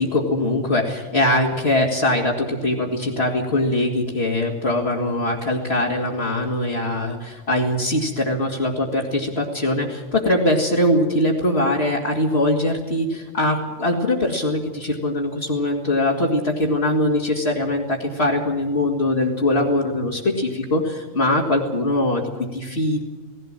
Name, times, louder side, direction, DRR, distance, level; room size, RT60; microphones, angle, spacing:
voice 1, 0.0-23.0, left 1 dB, 60° left, -3 dB, 2.5 m, -22 dB
18.0 x 17.0 x 8.8 m, 1.2 s
omnidirectional pair, 1.2 m